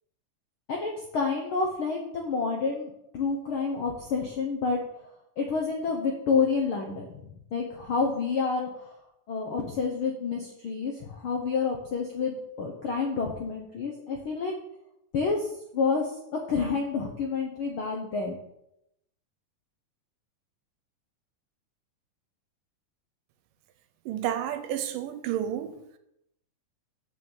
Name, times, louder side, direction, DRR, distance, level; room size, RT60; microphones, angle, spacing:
voice 1, 0.7-4.8 5.4-7.2 7.5-8.9 9.3-14.6 15.1-15.5 15.7-16.1 16.5-18.4, left 4 dB, 75° left, 1.2 m, -29 dB
voice 2, 24.1-25.7, right 10 dB, 85° right, 2.4 m, -30 dB
6.4 x 5.6 x 7.1 m
omnidirectional pair, 3.7 m